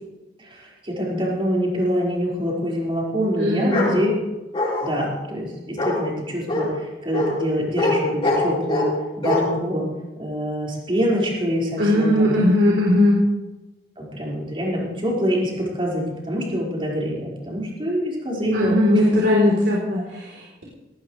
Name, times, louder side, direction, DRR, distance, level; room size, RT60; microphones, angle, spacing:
voice 1, 0.4-4.1 4.8-8.9 9.2-9.9 10.2-12.3 14.0-18.8, equal, 30° right, -4 dB, 5.2 m, -25 dB
voice 2, 3.4-4.1 11.8-13.3 18.5-20.6, left 1 dB, 85° right, -4 dB, 3.9 m, -19 dB
Bark, 3.7-3.9 4.5-5.1 5.8-6.0 6.5-6.6 7.1-7.3 7.8-7.9 8.2-8.9 9.2-9.4, left 2 dB, 30° left, 6.5 m, -22 dB
18.0 x 18.0 x 3.4 m, 1.1 s
head